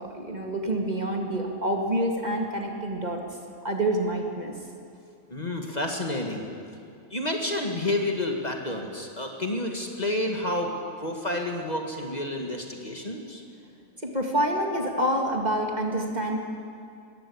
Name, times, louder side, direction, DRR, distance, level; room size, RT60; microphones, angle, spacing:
voice 1, 0.0-3.2 3.6-4.5 14.0-16.4, right 1 dB, 30° right, 2 dB, 2.1 m, -27 dB
voice 2, 5.3-6.5 7.1-10.7 11.0-13.4, left 1 dB, 30° left, 2 dB, 1.9 m, -30 dB
21.5 x 15.0 x 8.6 m, 2.5 s
omnidirectional pair, 1.4 m